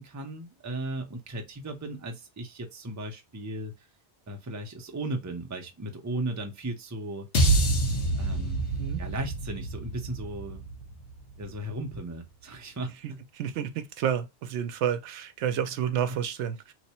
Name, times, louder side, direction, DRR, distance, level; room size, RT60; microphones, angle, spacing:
voice 1, 0.0-3.9 4.3-7.3 8.1-8.6 9.0-10.6 11.4-13.2 16.1-16.2, right 1 dB, 20° right, 0.5 m, -36 dB
sound 1, 7.3-11.7, right 2 dB, 75° left, 1.2 m, -27 dB
voice 2, 13.3-16.7, right 9 dB, 85° right, 0.9 m, -30 dB
3.2 x 2.1 x 4.2 m
omnidirectional pair, 1.2 m